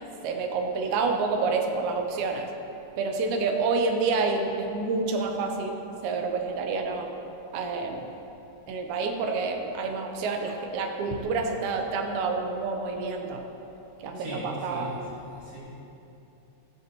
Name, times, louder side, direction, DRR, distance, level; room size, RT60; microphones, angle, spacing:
voice 1, 0.2-2.5 3.0-7.1 7.5-8.1 8.7-13.4 14.0-14.9, right 4 dB, 85° right, 3 dB, 1.7 m, -28 dB
voice 2, 14.1-14.9 15.3-15.6, equal, 65° right, -8 dB, 4.7 m, -38 dB
14.5 x 12.0 x 3.0 m, 2.9 s
omnidirectional pair, 4.6 m